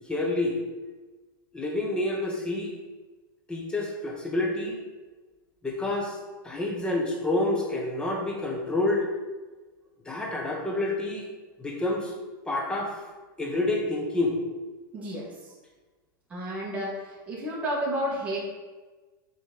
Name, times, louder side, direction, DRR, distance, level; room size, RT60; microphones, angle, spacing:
voice 1, 0.1-0.6 1.5-2.7 3.5-4.8 5.6-6.2 6.4-9.1 10.0-11.3 11.6-12.1 12.5-13.0 13.4-14.4, left 2 dB, 10° left, 0 dB, 1.0 m, -28 dB
voice 2, 14.9-15.3 16.3-18.4, equal, 10° right, -7 dB, 1.7 m, -31 dB
7.2 x 4.0 x 3.9 m, 1.3 s
supercardioid pair, 145°, 11 cm